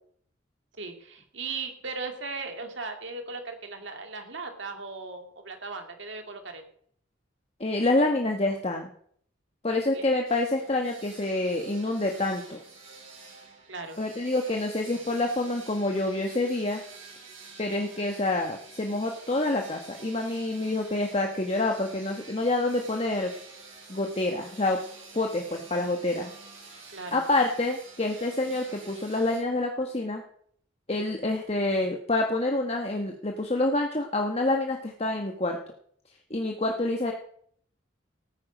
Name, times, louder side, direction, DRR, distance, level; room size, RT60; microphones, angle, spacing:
voice 1, 0.8-6.6 9.9-10.1 13.7-14.0 26.9-27.2, right 4 dB, 65° right, 5 dB, 2.4 m, -37 dB
voice 2, 7.6-8.9 9.6-12.6 14.0-16.8 17.6-23.3 23.9-24.8 25.1-26.3 27.1-30.2 30.9-35.6 36.3-37.1, left 2 dB, 30° left, 2 dB, 1.2 m, -27 dB
sound 1, 10.2-29.4, right 4 dB, 80° right, 7.4 m, -48 dB
17.5 x 9.5 x 5.1 m, 0.62 s
head